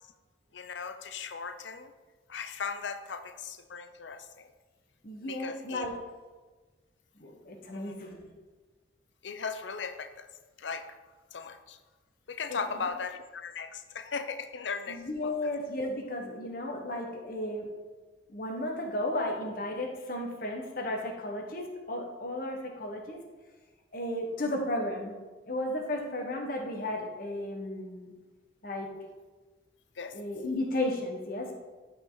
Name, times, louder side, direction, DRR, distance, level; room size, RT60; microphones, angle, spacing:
voice 1, 0.5-1.9 2.3-4.5 5.3-5.9 7.7-7.9 9.2-10.3 10.6-11.0 11.3-11.8 12.3-15.5 30.0-30.1, left 5 dB, 75° left, 9 dB, 0.6 m, -38 dB
voice 2, 5.0-5.9 7.2-8.3 12.5-12.8 14.9-17.7 18.3-23.2 23.9-25.2 25.5-28.1 28.6-28.9 30.1-31.6, left 1 dB, 50° left, 1 dB, 1.4 m, -34 dB
11.5 x 5.3 x 4.0 m, 1.3 s
head